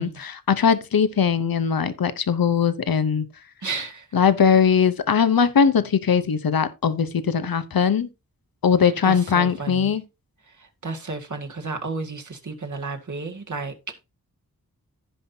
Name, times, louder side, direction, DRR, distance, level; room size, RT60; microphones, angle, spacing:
voice 1, 0.0-3.3 4.1-8.1 8.6-10.0, left 7 dB, 80° left, 0.8 m, -20 dB
voice 2, 3.6-4.1 8.8-9.9 10.4-14.0, right 3 dB, 55° right, 1.9 m, -33 dB
15.5 x 5.7 x 2.8 m
wide cardioid pair, 80°, 35 cm